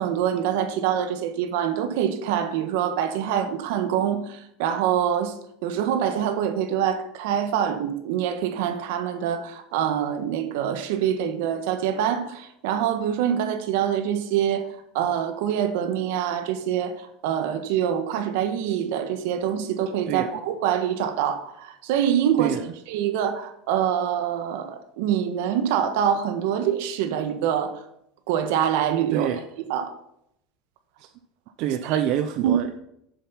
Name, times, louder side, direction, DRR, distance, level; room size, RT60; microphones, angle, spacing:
voice 1, 0.0-5.4 5.6-14.7 14.9-22.5 22.9-27.8 28.3-29.3 29.7-29.9 31.9-32.0 32.4-32.6, right 9 dB, 70° right, 1.3 m, -25 dB
voice 2, 31.6-32.8, right 10 dB, 50° right, 0.5 m, -26 dB
7.2 x 7.0 x 5.7 m
cardioid pair, 165°, 0 cm